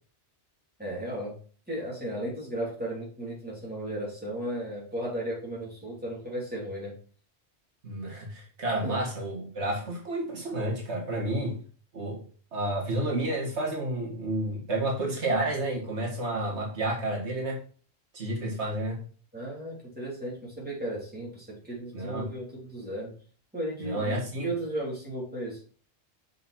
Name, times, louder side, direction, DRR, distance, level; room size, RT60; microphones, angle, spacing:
voice 1, 0.8-1.4 1.7-6.9 8.8-9.0 19.3-23.1 23.5-24.1 24.4-25.7, right 1 dB, 10° right, 3.5 m, -35 dB
voice 2, 7.8-11.6 11.9-12.2 12.5-17.6 18.1-19.0 21.9-22.3 23.8-24.5, right 1 dB, 80° right, 1.8 m, -30 dB
6.6 x 5.2 x 4.3 m
omnidirectional pair, 1.1 m